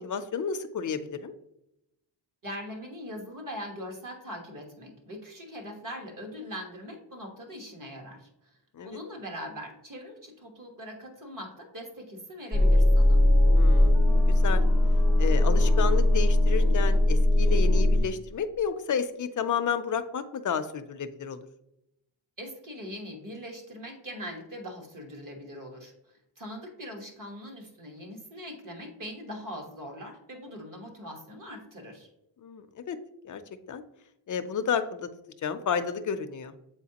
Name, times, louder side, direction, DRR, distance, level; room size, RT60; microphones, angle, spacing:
voice 1, 0.0-1.3 8.7-9.0 13.5-14.0 14.3-14.6 15.2-21.4 32.4-33.0 33.2-33.4 33.7-33.8 34.3-35.1 35.4-36.5, left 6 dB, 45° left, 8 dB, 0.5 m, -31 dB
voice 2, 2.4-8.5 8.8-13.2 22.4-32.1, equal, 45° right, 2 dB, 1.3 m, -41 dB
sound 1, 12.5-18.0, left 1 dB, 85° right, 1.8 m, -20 dB
7.2 x 4.6 x 2.8 m, 0.84 s
wide cardioid pair, 130°, 46 cm